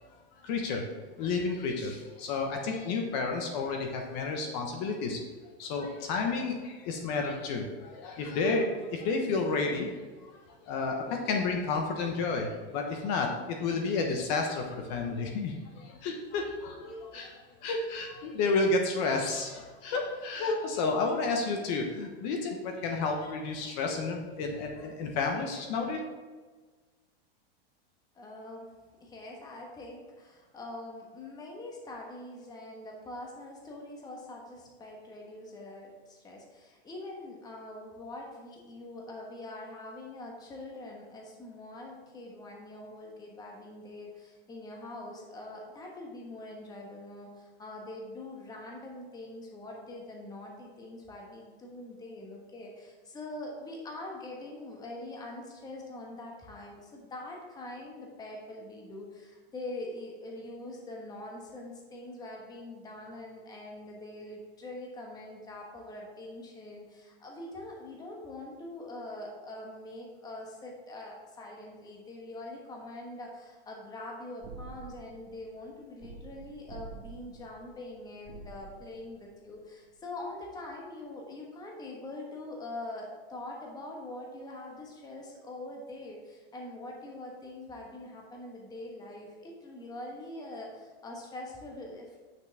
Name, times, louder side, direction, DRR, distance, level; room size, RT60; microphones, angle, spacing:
voice 1, 0.4-0.8 1.2-5.2 5.6-9.9 10.3-26.0, left 3 dB, 45° left, 2 dB, 1.1 m, -31 dB
voice 2, 28.1-28.7 29.0-92.3, left 2 dB, 15° left, -1 dB, 1.2 m, -43 dB
sound 1, 74.4-80.0 80.2-80.6, right 4 dB, 30° right, 1.0 m, -49 dB
9.0 x 6.0 x 3.5 m, 1.4 s
supercardioid pair, 150°, 31 cm